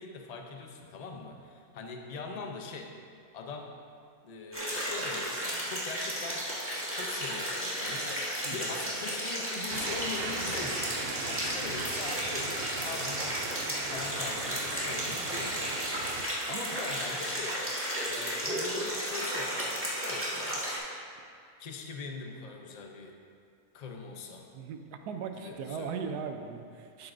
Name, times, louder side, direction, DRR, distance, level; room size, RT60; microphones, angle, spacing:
voice 1, 0.0-2.9 3.3-3.7 4.2-6.5 6.9-10.9 11.3-15.7 16.5-17.6 18.0-20.8 21.6-23.2 23.7-24.5 25.4-26.1, left 4 dB, 45° left, 3 dB, 0.5 m, -42 dB
sound 1, 4.5-20.8, equal, 10° right, 1.4 m, -34 dB
sound 2, 9.7-16.2, right 4 dB, 55° right, 0.7 m, -38 dB
voice 2, 24.5-27.1, right 6 dB, 85° right, 6 dB, 1.2 m, -38 dB
11.5 x 7.9 x 2.6 m, 2.3 s
omnidirectional pair, 1.7 m